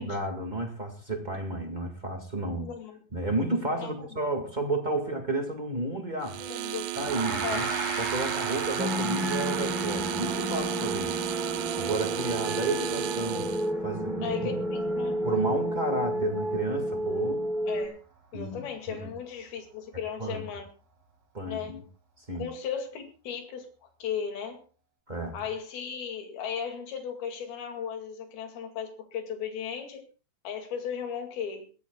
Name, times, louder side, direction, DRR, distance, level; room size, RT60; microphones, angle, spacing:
voice 1, 0.0-2.7 3.1-6.4 6.9-7.7 8.0-13.5 13.8-14.5 15.2-17.5 18.3-19.1 19.9-20.4 21.3-21.8 22.2-22.5 25.1-25.4, right 2 dB, 30° right, 3 dB, 0.8 m, -32 dB
voice 2, 2.6-3.0 3.8-4.1 6.4-6.9 7.4-7.6 14.2-15.2 17.7-18.0 18.3-20.7 21.5-21.8 22.4-24.6 25.3-30.0 30.4-31.7, left 7 dB, 80° left, 4 dB, 4.2 m, -36 dB
sound 1, 6.2-13.7, right 15 dB, 85° right, 2.6 m, -33 dB
Gong, 7.0-16.6, right 3 dB, 50° right, 6.0 m, -38 dB
sound 2, 8.8-17.9, equal, ahead, 3.5 m, -31 dB
23.0 x 16.0 x 2.3 m, 0.34 s
omnidirectional pair, 4.3 m